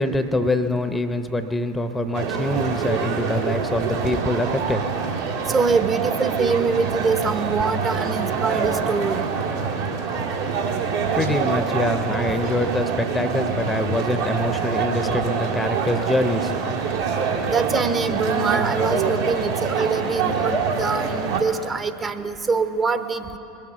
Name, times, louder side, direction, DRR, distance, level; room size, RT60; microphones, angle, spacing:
voice 1, 0.0-4.8 11.1-16.6, left 1 dB, 10° left, 9 dB, 0.7 m, -24 dB
sound 1, 2.1-21.4, right 5 dB, 70° right, 1.7 m, -25 dB
voice 2, 5.5-9.2 17.5-23.4, right 4 dB, 25° right, 9 dB, 0.8 m, -24 dB
21.5 x 7.4 x 7.0 m, 2.9 s
figure-of-eight pair, 80°, 0 cm